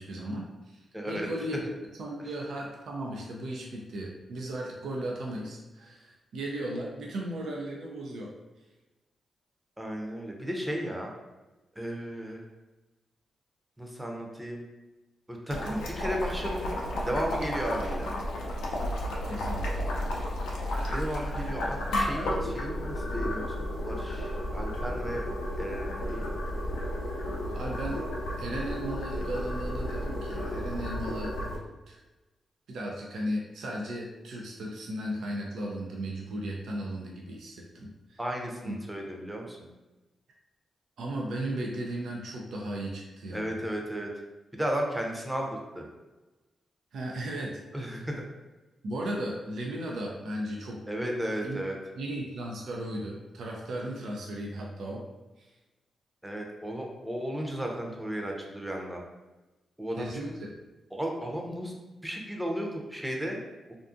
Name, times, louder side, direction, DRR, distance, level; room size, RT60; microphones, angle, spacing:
voice 1, 0.0-1.7 2.0-8.3 19.3-19.7 21.5-21.6 27.5-28.0 28.4-31.4 31.9-32.0 32.7-38.2 38.6-38.8 41.0-43.4 46.9-48.0 48.8-50.8 51.4-51.6 52.0-55.1 55.4-55.5 60.0-60.5, right 1 dB, 75° right, -1 dB, 0.4 m, -36 dB
voice 2, 0.9-1.3 2.2-2.3 9.8-11.1 11.8-12.4 13.8-14.6 15.3-16.8 17.1-18.1 20.9-25.2 25.6-26.3 38.2-39.7 43.3-44.1 44.5-45.9 47.7-48.2 50.9-51.8 56.2-59.0 59.8-60.2 60.9-61.8 62.0-63.4, equal, 10° right, 0 dB, 0.7 m, -34 dB
Boiling, 15.5-31.6, left 1 dB, 85° left, 0.4 m, -32 dB
2.5 x 2.4 x 2.5 m, 1.1 s
supercardioid pair, 45°, 0 cm